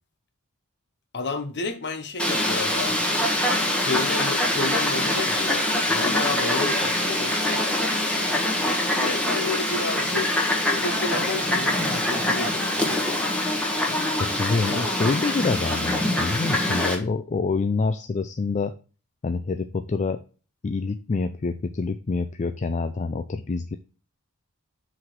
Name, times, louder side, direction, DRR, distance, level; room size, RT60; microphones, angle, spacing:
voice 1, 1.1-3.0 3.8-7.6 9.0-10.5 10.8-12.8 14.5-14.8, left 3 dB, 50° left, 1.0 m, -31 dB
Fowl, 2.2-17.0, left 1 dB, 5° left, 1.3 m, -24 dB
voice 2, 14.2-18.7 19.2-20.2 20.6-23.8, left 4 dB, 30° left, 0.4 m, -26 dB
5.9 x 4.8 x 4.5 m
head